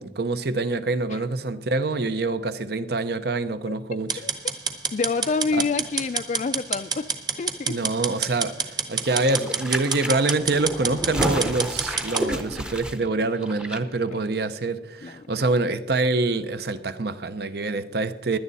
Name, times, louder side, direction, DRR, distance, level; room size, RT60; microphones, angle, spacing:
voice 1, 0.0-4.2 5.5-5.6 7.7-18.4, right 3 dB, 65° right, 12 dB, 0.8 m, -26 dB
sound 1, 4.1-12.3, right 5 dB, 25° right, 1.1 m, -28 dB
voice 2, 4.9-7.1 7.4-7.8 15.0-15.3, left 4 dB, 40° left, 8 dB, 0.3 m, -27 dB
sound 2, 9.0-13.8 14.1-14.2, equal, 5° right, 0.7 m, -31 dB
16.5 x 11.5 x 4.1 m, 0.96 s
head